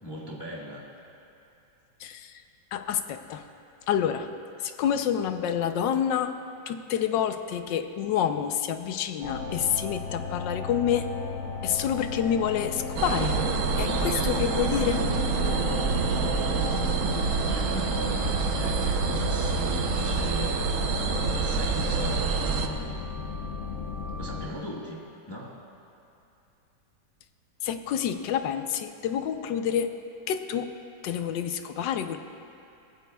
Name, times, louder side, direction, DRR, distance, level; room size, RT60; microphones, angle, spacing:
voice 1, 0.0-0.9 17.5-20.6 21.3-23.0 24.2-25.6, equal, 15° left, -4 dB, 1.3 m, -38 dB
voice 2, 2.0-2.4 2.7-3.4 3.9-4.3 4.6-6.3 6.7-11.1 11.6-13.4 13.8-15.0 27.6-29.9 30.3-30.7 31.0-32.2, left 9 dB, 80° left, 8 dB, 1.3 m, -28 dB
sound 1, 9.2-24.5, left 4 dB, 55° left, 1.3 m, -34 dB
sound 2, 13.0-22.7, right 5 dB, 60° right, 0.9 m, -27 dB
23.0 x 16.0 x 2.3 m, 2.8 s
omnidirectional pair, 2.0 m